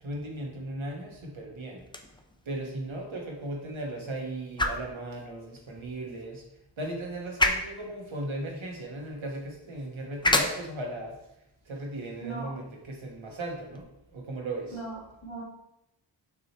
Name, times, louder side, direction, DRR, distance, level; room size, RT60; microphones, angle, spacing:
voice 1, 0.0-1.8 2.5-6.4 6.8-11.1 11.7-13.9 14.1-14.8, right 1 dB, 75° right, 0 dB, 1.2 m, -37 dB
sound 1, 1.8-13.8, left 2 dB, 10° left, 0.4 m, -34 dB
voice 2, 12.2-12.5 14.7-15.4, right 3 dB, 75° left, -4 dB, 1.5 m, -38 dB
6.1 x 2.9 x 2.9 m, 0.82 s
cardioid pair, 50°, 47 cm